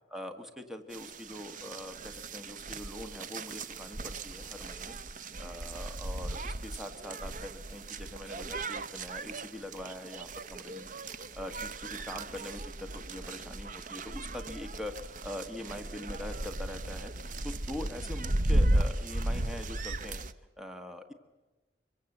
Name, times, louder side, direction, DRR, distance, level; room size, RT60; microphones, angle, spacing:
voice 1, 0.1-5.0 5.4-10.9 11.3-17.1 17.4-20.2 20.6-21.1, left 1 dB, 5° right, 6 dB, 1.4 m, -43 dB
sound 1, 0.9-20.3, right 1 dB, 45° right, 0.8 m, -35 dB
25.0 x 23.5 x 7.9 m, 1.1 s
head